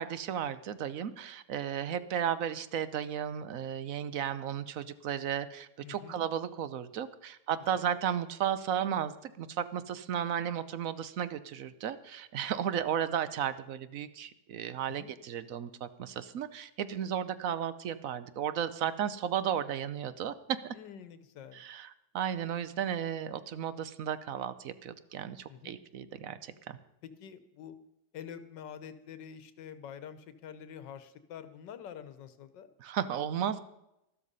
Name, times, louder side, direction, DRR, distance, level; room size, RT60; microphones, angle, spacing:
voice 1, 0.0-20.7 21.5-26.8 32.8-33.6, right 9 dB, 60° right, 14 dB, 1.0 m, -34 dB
voice 2, 5.8-6.2 7.7-7.8 14.9-15.1 20.7-21.6 25.5-25.8 27.0-27.8 28.1-32.7, left 8 dB, 90° left, 12 dB, 1.6 m, -47 dB
13.0 x 12.5 x 5.5 m, 0.86 s
omnidirectional pair, 1.9 m